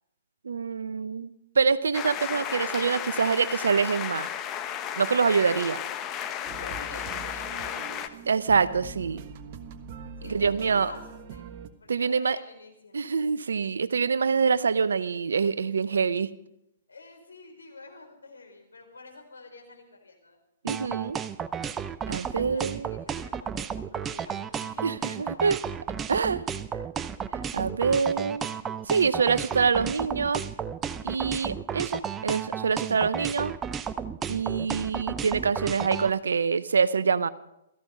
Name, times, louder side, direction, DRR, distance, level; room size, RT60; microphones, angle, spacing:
voice 1, 0.4-1.3 1.6-4.3 5.0-5.8 8.3-9.2 10.2-10.9 11.9-12.4 12.9-16.3 20.6-21.2 22.1-22.9 24.8-25.6 26.1-26.5 27.5-28.5 28.9-30.4 31.0-33.5 34.3-37.3, right 5 dB, 70° right, 16 dB, 0.8 m, -25 dB
sound 1, 1.9-8.1, left 9 dB, 25° left, 1.1 m, -34 dB
sound 2, 6.5-11.7, right 6 dB, 40° right, 1.3 m, -43 dB
voice 2, 6.6-8.0 10.2-11.5 11.8-13.0 16.9-20.4 22.2-25.3 26.1-26.5, left 3 dB, 80° left, 3 dB, 4.2 m, -48 dB
sound 3, 20.7-36.1, right 7 dB, 20° right, 0.6 m, -33 dB
17.0 x 14.0 x 5.4 m, 0.86 s
figure-of-eight pair, 120°, 0 cm